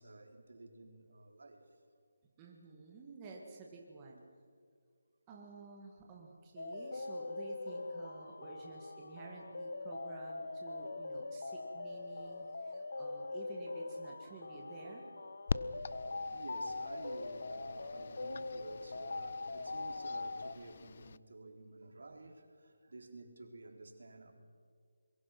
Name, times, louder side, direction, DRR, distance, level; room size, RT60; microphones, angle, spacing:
voice 1, 0.0-1.6 15.8-24.3, right 2 dB, 70° right, 4 dB, 3.8 m, -52 dB
voice 2, 2.4-4.2 5.3-15.1, right 3 dB, 15° right, -1 dB, 1.8 m, -52 dB
sound 1, 6.6-20.5, left 3 dB, 75° left, 1.5 m, -42 dB
sound 2, 15.5-21.2, left 5 dB, 40° left, 0.5 m, -44 dB
25.5 x 22.0 x 6.0 m, 2.1 s
hypercardioid pair, 175°, 0 cm